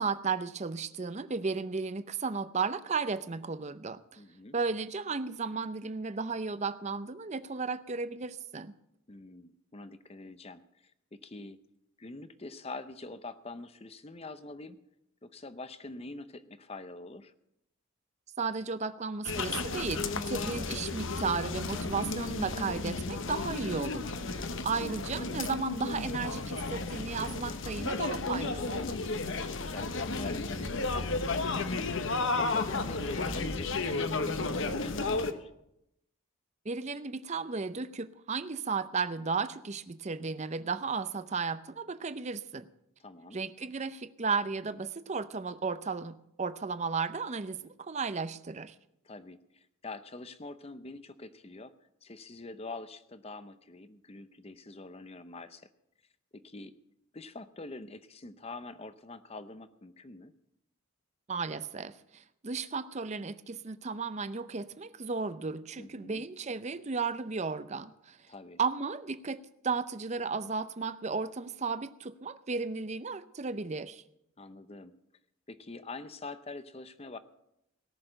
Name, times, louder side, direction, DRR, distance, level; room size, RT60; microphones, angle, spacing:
voice 1, 0.0-4.2 4.5-8.7 18.4-29.0 36.6-42.7 43.3-48.7 61.3-68.2 68.6-74.0, right 4 dB, 30° right, 13 dB, 0.5 m, -34 dB
voice 2, 4.2-4.6 9.1-11.6 12.0-14.8 15.2-17.3 24.3-24.8 29.6-32.1 32.3-35.5 43.0-43.4 49.0-51.7 52.0-55.7 56.3-56.8 57.1-60.3 65.8-66.2 68.3-68.6 74.4-74.9 75.5-77.2, left 2 dB, 30° left, 12 dB, 0.7 m, -45 dB
sound 1, 19.2-35.3, left 3 dB, 60° left, 0.9 m, -33 dB
18.0 x 6.6 x 7.8 m, 0.82 s
head